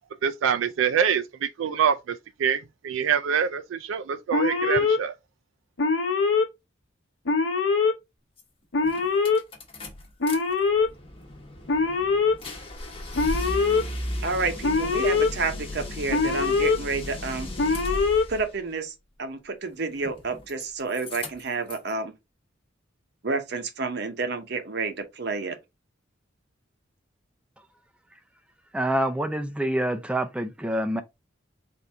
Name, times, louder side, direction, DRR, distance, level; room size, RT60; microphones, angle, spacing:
voice 1, 0.2-1.2 1.6-2.0 2.4-5.1, right 8 dB, 85° right, 0.3 m, -24 dB
Alarm, 4.3-5.0 5.8-6.4 7.3-7.9 8.7-9.4 10.2-10.9 11.7-12.3 13.2-13.8 14.6-15.3 16.1-16.8 17.6-18.2, left 4 dB, 80° left, 0.8 m, -22 dB
sound 1, 8.4-8.5 8.8-10.4 10.7-18.5 19.9-20.6 20.9-21.9, left 1 dB, 30° left, 0.9 m, -35 dB
voice 2, 14.2-17.5 18.3-22.1 23.2-25.6, right 4 dB, 60° right, 0.7 m, -30 dB
voice 3, 28.7-31.0, right 1 dB, 5° right, 0.4 m, -26 dB
4.2 x 2.6 x 3.4 m
head